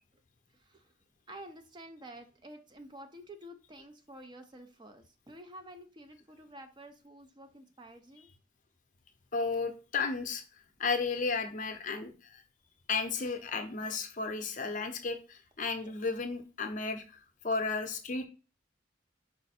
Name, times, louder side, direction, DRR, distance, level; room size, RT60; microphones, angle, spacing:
voice 1, 0.5-0.9 1.3-8.3 15.8-15.9, right 1 dB, 25° right, 7 dB, 0.4 m, -50 dB
voice 2, 9.3-10.4 10.8-12.4 12.9-18.3, left 4 dB, 40° left, 6 dB, 0.6 m, -33 dB
5.1 x 2.5 x 4.1 m, 0.35 s
head